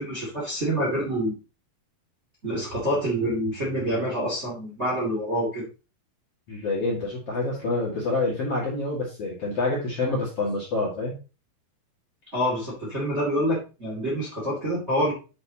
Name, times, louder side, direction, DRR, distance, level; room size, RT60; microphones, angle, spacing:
voice 1, 0.0-1.4 2.4-5.7 12.3-15.1, equal, 20° right, -4 dB, 2.2 m, -27 dB
voice 2, 6.5-11.2, left 2 dB, 45° left, -4 dB, 2.7 m, -27 dB
9.1 x 6.3 x 2.9 m, 0.32 s
omnidirectional pair, 4.6 m